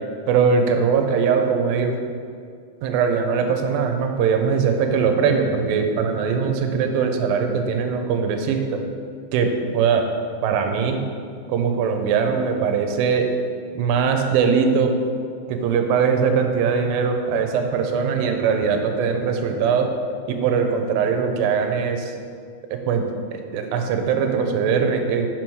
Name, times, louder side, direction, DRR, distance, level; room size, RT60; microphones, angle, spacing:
voice 1, 0.3-1.9 2.8-8.8 9.3-10.1 10.4-11.0 11.5-13.3 13.8-15.0 15.5-19.9 20.3-22.1 22.7-23.1 23.3-25.3, right 6 dB, 85° right, 4 dB, 2.3 m, -21 dB
5.7 x 4.5 x 6.2 m, 2.2 s
omnidirectional pair, 4.2 m